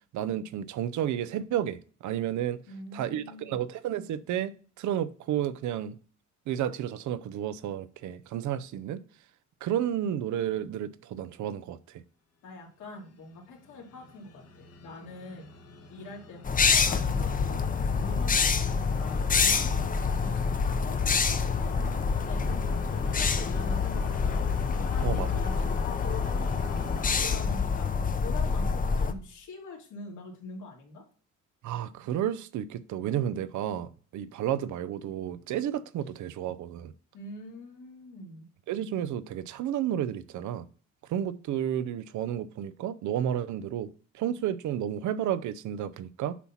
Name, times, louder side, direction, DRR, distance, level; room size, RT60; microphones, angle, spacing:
voice 1, 0.1-2.6 2.9-6.0 6.5-9.0 9.6-12.0 25.0-25.3 31.6-36.9 38.7-40.7 41.1-46.4, right 10 dB, 75° right, 0.6 m, -31 dB
voice 2, 2.7-3.6 12.4-15.5 15.9-24.5 24.8-31.0 37.1-38.5, left 2 dB, 80° left, 2.4 m, -44 dB
sound 1, 13.1-27.4, left 5 dB, 55° left, 1.2 m, -45 dB
sound 2, 16.4-29.1, left 5 dB, 25° left, 0.7 m, -27 dB
8.3 x 2.9 x 5.7 m
cardioid pair, 90°, 30 cm